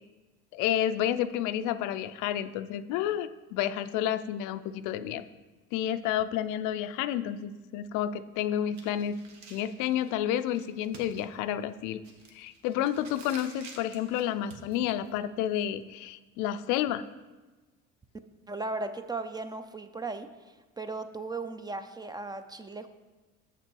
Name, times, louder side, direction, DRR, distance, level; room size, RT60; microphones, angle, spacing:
voice 1, 0.5-5.2 5.7-9.2 9.5-12.0 12.3-17.0, left 11 dB, 85° left, 11 dB, 0.5 m, -30 dB
sound 1, 8.7-15.9, right 4 dB, 65° right, 1.2 m, -51 dB
voice 2, 18.5-20.3 20.8-22.9, right 3 dB, 15° right, 9 dB, 0.4 m, -36 dB
6.8 x 5.9 x 4.5 m, 1.2 s
cardioid pair, 105°, 30 cm